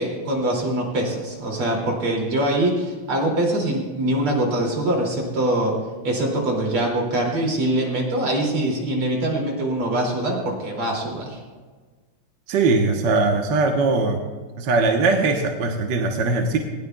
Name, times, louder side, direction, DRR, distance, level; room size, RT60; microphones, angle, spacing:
voice 1, 0.0-5.8 6.0-11.4, right 1 dB, 75° right, -1 dB, 3.6 m, -23 dB
voice 2, 12.5-14.2 14.6-16.6, right 3 dB, 60° right, 3 dB, 1.6 m, -20 dB
19.5 x 16.5 x 2.3 m, 1.4 s
omnidirectional pair, 2.4 m